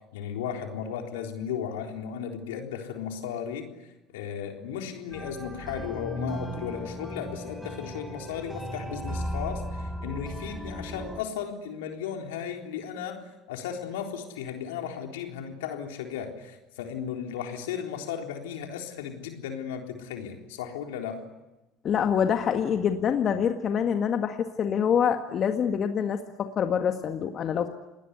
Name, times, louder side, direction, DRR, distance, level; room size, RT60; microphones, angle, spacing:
voice 1, 0.1-3.7 4.1-21.2, left 8 dB, 80° left, 3 dB, 3.8 m, -35 dB
sound 1, 5.1-11.2, equal, 5° right, 4.9 m, -36 dB
voice 2, 21.8-27.7, left 8 dB, 50° left, 6 dB, 1.8 m, -26 dB
28.5 x 20.0 x 9.7 m, 1.0 s
hypercardioid pair, 70°, 0 cm